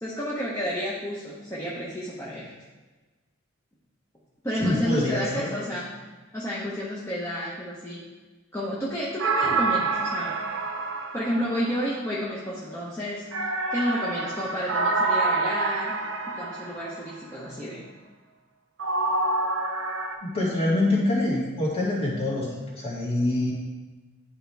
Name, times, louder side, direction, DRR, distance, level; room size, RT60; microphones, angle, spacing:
voice 1, 0.0-2.5 4.4-5.9 6.3-8.0 8.5-10.3 11.1-15.9 16.3-17.8, equal, 15° left, -7 dB, 1.0 m, -31 dB
voice 2, 4.6-5.5 20.2-23.5, left 1 dB, 30° left, -5 dB, 2.1 m, -25 dB
sound 1, 9.2-12.0 13.3-17.1 18.8-20.1, right 3 dB, 65° right, 0.7 m, -27 dB
11.0 x 4.4 x 3.4 m, 1.3 s
head